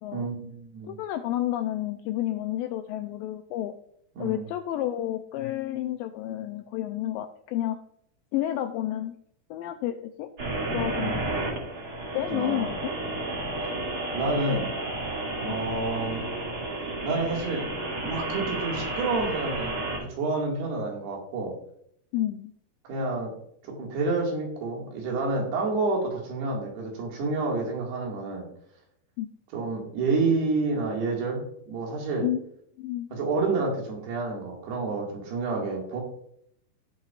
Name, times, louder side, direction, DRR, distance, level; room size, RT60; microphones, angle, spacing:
voice 1, 0.1-0.9 4.2-4.4 10.9-11.2 12.3-12.8 14.1-14.7 15.4-16.2 17.0-17.7 18.0-21.5 22.9-23.3 23.6-28.5 29.5-32.2 33.1-36.0, right 3 dB, 90° right, -1 dB, 4.0 m, -29 dB
voice 2, 0.9-3.8 4.2-7.8 8.3-9.2 9.5-10.3 10.7-11.4 12.1-13.0 15.5-15.6 22.1-22.5 29.2-29.3 32.2-32.4 32.8-33.1, left 13 dB, 85° left, 6 dB, 2.0 m, -30 dB
sound 1, 10.4-20.0, right 2 dB, 30° right, 2.1 m, -32 dB
15.0 x 5.6 x 2.4 m, 0.69 s
omnidirectional pair, 4.5 m